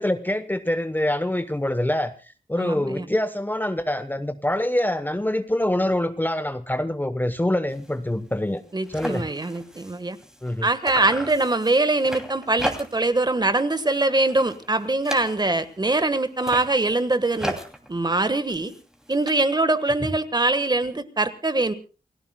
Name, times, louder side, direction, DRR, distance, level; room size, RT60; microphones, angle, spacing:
voice 1, 0.0-2.1 2.5-8.6 8.9-9.3 10.4-10.7, left 1 dB, 10° left, 11 dB, 0.9 m, -25 dB
voice 2, 2.6-3.0 8.7-10.2 10.6-17.5 17.9-18.7 19.1-21.7, right 2 dB, 25° right, 12 dB, 1.4 m, -23 dB
sound 1, 7.7-7.9 8.3-8.4 8.6-10.6 10.8-13.2 13.5-13.9 14.2-15.7 16.3-19.3, equal, 5° right, 2.7 m, -36 dB
29.5 x 17.0 x 2.2 m, 0.35 s
wide cardioid pair, 135°, 16 cm